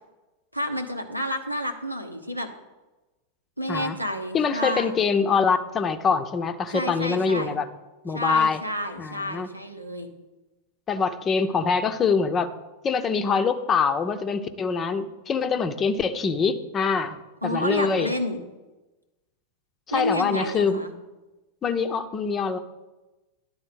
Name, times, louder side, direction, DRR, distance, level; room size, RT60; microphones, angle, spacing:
voice 1, 0.5-2.5 3.6-4.9 6.7-7.5 8.1-10.1 17.4-18.4 19.9-20.9, equal, 90° right, 5 dB, 0.9 m, -30 dB
voice 2, 4.3-7.7 8.0-8.6 9.0-9.5 10.9-12.5 12.8-17.2 17.4-18.1 19.9-20.8 21.6-22.6, left 5 dB, 25° left, 9 dB, 0.6 m, -24 dB
11.0 x 3.9 x 7.7 m, 1.1 s
figure-of-eight pair, 90°, 0 cm